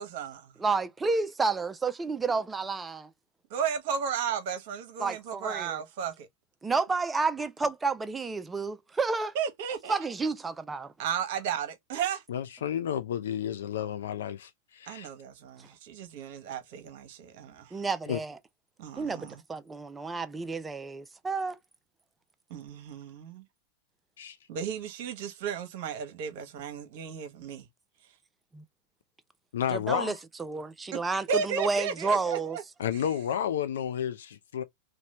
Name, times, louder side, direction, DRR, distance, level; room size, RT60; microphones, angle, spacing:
voice 1, 0.0-0.3 3.5-6.3 9.3-9.9 11.0-12.2 14.9-17.8 18.8-19.4 22.5-23.4 24.5-27.7 30.9-31.0 31.3-32.6, right 7 dB, 55° right, 0.9 m, -34 dB
voice 2, 0.6-3.1 5.0-5.8 6.6-9.3 9.9-10.9 17.7-18.4 19.0-21.6 28.5-28.6 29.7-30.1 30.4-32.6, right 4 dB, 15° right, 0.4 m, -30 dB
voice 3, 12.3-15.1 18.1-18.2 24.2-24.4 29.5-30.2 32.8-34.6, left 9 dB, 70° left, 0.5 m, -31 dB
3.0 x 2.2 x 2.9 m
figure-of-eight pair, 90°, 0 cm